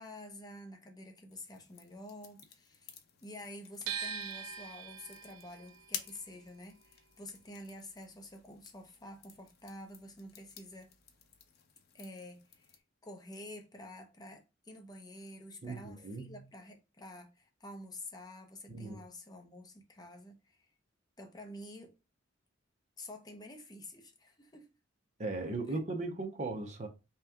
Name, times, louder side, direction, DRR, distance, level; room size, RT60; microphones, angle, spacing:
voice 1, 0.0-2.9 3.2-10.9 11.9-12.8 13.0-20.6 21.2-22.0 23.0-24.8 25.7-25.8, left 1 dB, 20° left, 0.7 m, -49 dB
sound 1, 1.3-12.8, left 8 dB, 55° left, 0.7 m, -52 dB
sound 2, 3.9-9.9 10.2-11.5, right 7 dB, 80° right, 0.6 m, -44 dB
voice 2, 15.6-16.3 18.7-19.0 25.2-26.9, right 3 dB, 35° right, 0.6 m, -37 dB
3.4 x 2.9 x 3.5 m
head